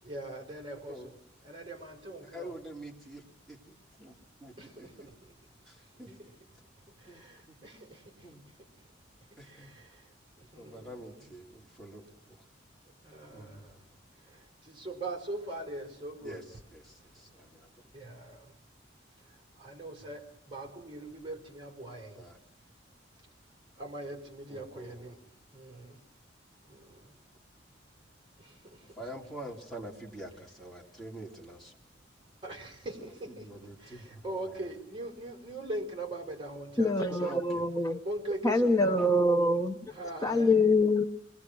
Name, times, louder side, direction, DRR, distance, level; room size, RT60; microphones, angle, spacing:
voice 1, 0.0-1.2 1.4-2.6 4.6-5.4 5.8-5.9 6.2-6.3 6.9-8.9 9.4-11.3 12.9-13.8 14.2-16.4 17.0-17.4 17.9-18.6 19.2-22.3 23.2-23.3 23.8-26.0 26.6-27.1 28.4-29.0 32.4-33.5 33.8-37.3 38.0-39.2 39.9-40.6, right 1 dB, 25° right, 4.2 m, -42 dB
voice 2, 2.3-5.1 5.7-6.2 7.1-7.6 8.2-8.4 9.4-9.8 10.6-12.4 13.3-14.0 16.2-17.7 22.1-22.4 24.5-25.1 28.8-31.8 33.0-34.6 37.1-37.6 39.0-39.1, right 1 dB, ahead, 3.7 m, -47 dB
voice 3, 36.8-38.0 38.4-39.8 40.2-41.0, left 2 dB, 20° left, 0.9 m, -25 dB
27.5 x 21.0 x 6.3 m
head